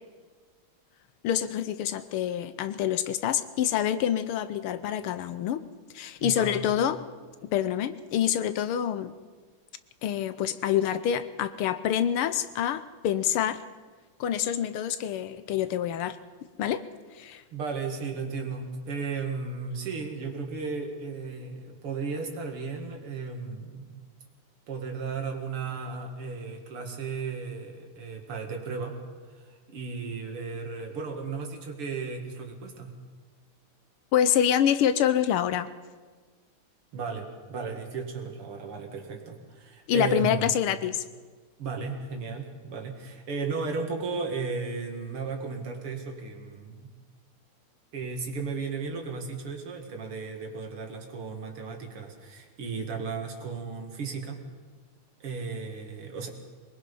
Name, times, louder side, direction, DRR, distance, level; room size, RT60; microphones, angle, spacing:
voice 1, 1.2-5.6 5.9-7.0 7.5-9.1 10.0-13.6 14.2-16.2 16.6-16.8 17.2-17.4 34.1-35.7 39.9-41.0, left 9 dB, 80° left, 12 dB, 1.7 m, -26 dB
voice 2, 6.2-6.8 17.5-24.1 24.7-29.0 29.4-32.9 36.9-40.6 41.6-46.9 47.9-54.4 55.2-56.3, right 4 dB, 80° right, 3 dB, 3.0 m, -35 dB
23.0 x 20.5 x 5.5 m, 1.4 s
omnidirectional pair, 2.4 m